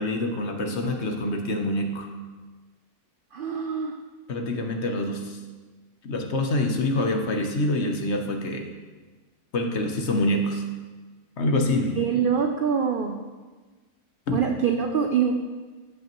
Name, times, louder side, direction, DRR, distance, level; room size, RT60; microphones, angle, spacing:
voice 1, 0.0-2.1 4.3-5.4 6.0-8.7 9.5-10.6 11.4-12.0 14.3-14.4, left 1 dB, 55° left, 3 dB, 1.0 m, -26 dB
voice 2, 3.3-4.0 12.0-13.2 14.3-15.3, right 7 dB, 85° right, 4 dB, 0.4 m, -24 dB
15.0 x 5.5 x 3.0 m, 1.3 s
omnidirectional pair, 1.6 m